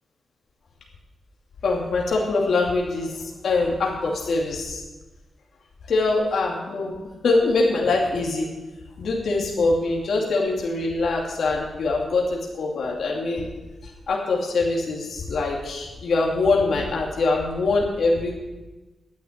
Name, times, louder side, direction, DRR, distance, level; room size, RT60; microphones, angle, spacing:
voice 1, 1.6-4.8 5.9-6.9 7.2-8.5 9.0-13.5 14.1-18.4, left 3 dB, 70° left, -1 dB, 2.5 m, -23 dB
10.5 x 9.0 x 9.6 m, 1.1 s
wide cardioid pair, 115°, 0 cm